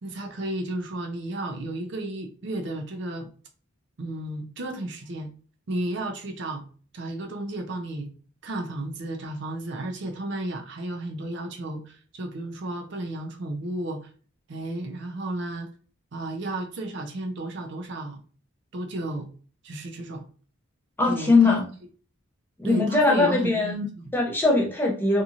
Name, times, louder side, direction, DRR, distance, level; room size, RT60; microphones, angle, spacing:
voice 1, 0.0-3.3 4.0-5.3 5.7-6.6 6.9-8.1 8.4-14.1 14.5-15.7 16.1-18.2 18.7-19.3 19.6-20.3 21.0-21.6 22.6-24.1, right 1 dB, 55° right, 4 dB, 0.5 m, -33 dB
voice 2, 21.0-21.7 22.6-23.8 24.1-25.2, left 3 dB, 10° left, -1 dB, 0.5 m, -21 dB
2.8 x 2.6 x 2.4 m, 0.40 s
head